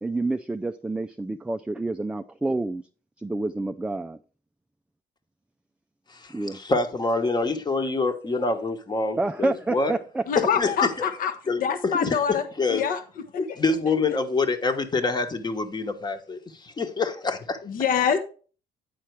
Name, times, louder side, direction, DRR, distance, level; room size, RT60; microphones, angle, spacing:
voice 1, 0.0-2.8 3.2-4.2 6.3-6.6 9.2-10.2, right 2 dB, 5° right, 0.3 m, -28 dB
voice 2, 6.1-9.9 10.3-10.9 11.5-12.8 13.4-17.6, left 3 dB, 25° left, 1.1 m, -26 dB
voice 3, 10.3-11.3 11.6-12.4 12.7-13.0 13.5-13.6 17.6-18.2, left 7 dB, 55° left, 0.9 m, -24 dB
9.2 x 4.3 x 4.6 m
cardioid pair, 110°, 17 cm